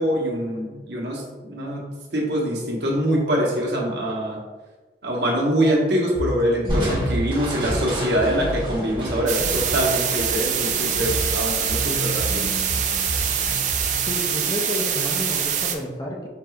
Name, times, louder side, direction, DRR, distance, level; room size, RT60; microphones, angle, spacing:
voice 1, 0.0-1.8 2.1-4.4 5.0-12.5, equal, 75° right, -2 dB, 1.0 m, -24 dB
sound 1, 6.1-14.2, right 1 dB, 55° left, 1.0 m, -31 dB
Crushing, 6.7-12.1, equal, 25° right, 1.0 m, -31 dB
sound 2, 9.3-15.8, right 8 dB, 45° right, 0.4 m, -24 dB
voice 2, 14.1-16.3, left 1 dB, 20° left, 0 dB, 0.5 m, -30 dB
5.1 x 3.2 x 2.3 m, 1.3 s
head